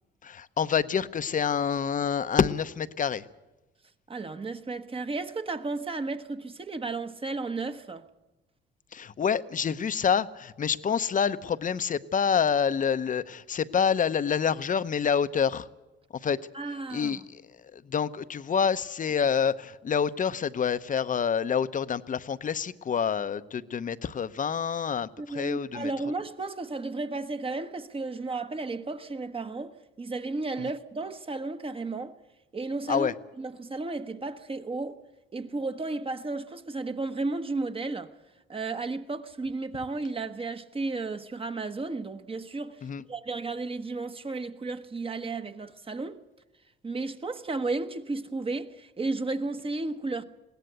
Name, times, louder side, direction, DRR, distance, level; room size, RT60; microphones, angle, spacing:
voice 1, 0.2-3.3 8.9-15.7 16.2-16.4 16.9-17.4 17.7-25.9 32.9-33.1 42.8-43.0, left 7 dB, 40° left, 0.8 m, -27 dB
voice 2, 4.1-8.1 16.5-17.2 25.2-32.2 32.5-35.0 35.3-38.1 38.5-46.2 46.8-50.2, right 3 dB, 25° right, 1.2 m, -33 dB
21.0 x 17.0 x 8.1 m
cardioid pair, 90°, 20 cm